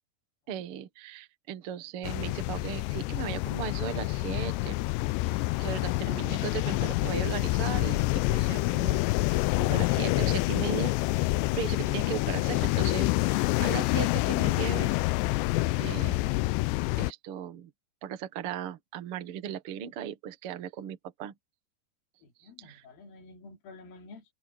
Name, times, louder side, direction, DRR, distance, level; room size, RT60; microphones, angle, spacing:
voice 1, 0.5-4.8 5.2-11.0 11.2-15.0 15.3-15.4 15.8-16.4 17.0-17.7 18.0-21.3 22.4-22.8, right 9 dB, 65° right, 1.4 m, -37 dB
sound 1, 2.0-17.1, left 20 dB, 90° left, 2.8 m, -27 dB
voice 2, 22.2-24.2, left 3 dB, 60° left, 4.6 m, -50 dB
omnidirectional pair, 4.9 m